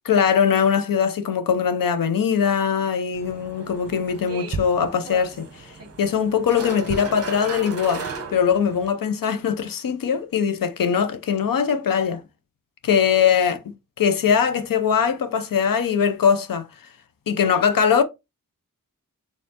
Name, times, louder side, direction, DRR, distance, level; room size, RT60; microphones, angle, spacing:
voice 1, 0.0-5.7 6.0-12.2 12.8-13.6 14.0-16.7 17.3-18.0, left 7 dB, 75° left, 0.6 m, -21 dB
sound 1, 3.1-8.9, right 4 dB, 45° right, 0.9 m, -35 dB
4.3 x 3.6 x 2.8 m
wide cardioid pair, 115°, 34 cm